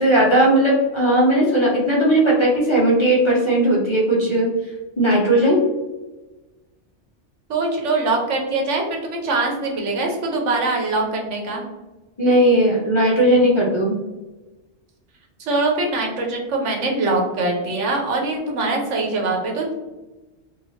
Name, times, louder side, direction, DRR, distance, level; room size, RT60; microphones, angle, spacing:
voice 1, 0.0-4.5 5.0-5.6 12.2-14.0, right 1 dB, 30° left, -5 dB, 0.6 m, -17 dB
voice 2, 7.5-11.6 15.4-19.7, right 3 dB, 85° right, 0 dB, 1.1 m, -23 dB
2.8 x 2.7 x 2.7 m, 1.1 s
omnidirectional pair, 1.2 m